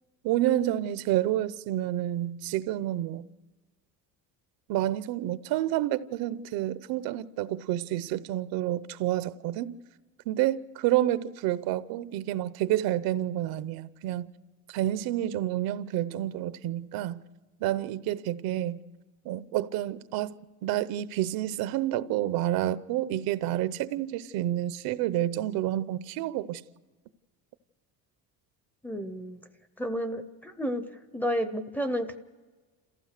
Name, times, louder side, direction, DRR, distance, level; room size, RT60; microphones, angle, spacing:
voice 1, 0.2-3.3 4.7-9.8 10.3-14.3 14.7-17.2 17.6-18.8 19.2-26.6, right 13 dB, 75° right, 0.7 m, -29 dB
voice 2, 28.8-29.4 29.8-30.8 31.1-32.2, equal, 5° left, 0.6 m, -31 dB
28.0 x 15.0 x 6.6 m
cardioid pair, 175°, 36 cm